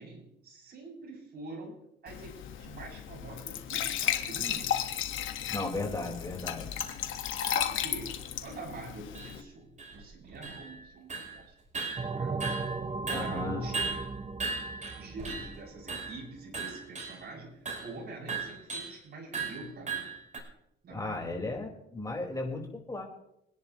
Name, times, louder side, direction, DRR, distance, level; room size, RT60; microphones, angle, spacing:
voice 1, 0.0-4.9 7.4-11.5 12.0-12.5 13.1-14.0 14.9-20.1 20.8-21.3, right 2 dB, 55° right, -3 dB, 7.3 m, -45 dB
Glass / Trickle dribble / Fill (with liquid), 2.1-9.4, left 10 dB, 80° left, 1.6 m, -34 dB
voice 2, 5.5-6.7 13.1-13.7 20.9-23.0, left 2 dB, 15° left, 0 dB, 4.6 m, -35 dB
sound 1, 6.9-7.0 7.4-7.5 8.1-8.2 8.4-8.5 9.1-9.4 9.8-10.8 11.1-11.4 11.7-12.8 13.1-15.6 15.9-16.2 16.5-17.2 17.7-17.9 18.3-19.0 19.3-20.4, right 4 dB, 40° right, 5.2 m, -37 dB
sound 2, 12.0-16.4, right 4 dB, 25° right, 0.6 m, -37 dB
26.5 x 10.5 x 3.1 m, 0.78 s
cardioid pair, 90°, 20 cm